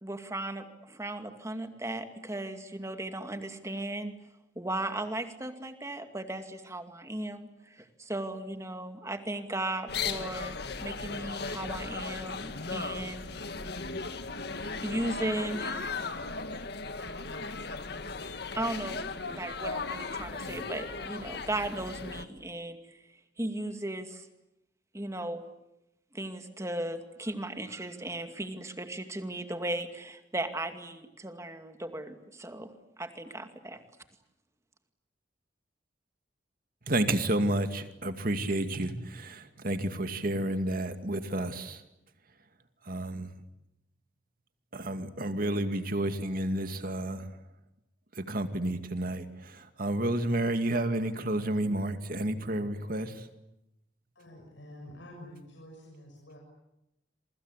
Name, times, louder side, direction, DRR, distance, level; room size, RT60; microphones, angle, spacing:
voice 1, 0.0-4.1 4.6-10.6 10.8-13.2 14.8-15.9 18.6-19.0 19.3-23.0 23.4-24.3 24.9-25.4 26.1-32.7 33.0-33.8, right 1 dB, 15° right, 7 dB, 2.3 m, -36 dB
sound 1, 9.9-22.2, left 4 dB, 60° left, 1.8 m, -37 dB
voice 2, 36.9-41.8 42.8-43.3 44.7-47.3 48.1-53.3, right 1 dB, 50° right, 8 dB, 2.3 m, -31 dB
voice 3, 54.1-56.4, equal, 90° left, -1 dB, 6.5 m, -48 dB
28.0 x 24.0 x 8.3 m, 0.88 s
head